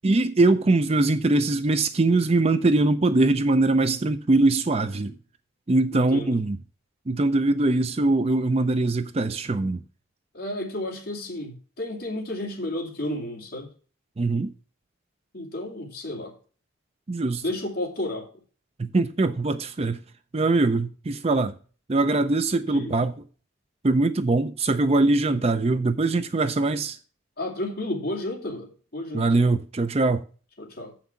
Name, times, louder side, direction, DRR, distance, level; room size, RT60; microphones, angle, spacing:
voice 1, 0.0-5.1 5.7-6.6 7.1-9.8 14.2-14.5 17.1-17.4 18.8-20.0 20.3-21.5 21.9-23.1 23.8-27.0 29.1-30.2, right 2 dB, 30° right, 0.4 m, -22 dB
voice 2, 5.9-6.4 10.3-13.7 15.3-16.3 17.2-18.3 22.7-23.0 27.4-29.3 30.6-30.9, left 1 dB, 50° left, 2.6 m, -32 dB
7.4 x 5.9 x 6.9 m
head